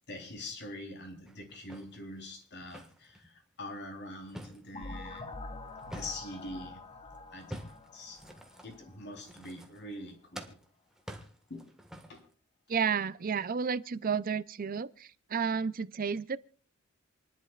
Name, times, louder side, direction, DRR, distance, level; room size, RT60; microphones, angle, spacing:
voice 1, 0.1-6.8 7.3-8.3 8.6-10.6 11.5-11.7 12.1-12.2, left 1 dB, 55° left, 3.6 m, -44 dB
sound 1, 1.3-3.3 3.8-6.5 7.3-10.1 10.3-12.3, equal, 5° right, 1.6 m, -48 dB
sound 2, 4.7-9.4, left 2 dB, 25° left, 0.9 m, -46 dB
voice 2, 12.7-16.4, right 6 dB, 45° right, 0.5 m, -31 dB
28.0 x 11.0 x 2.4 m
head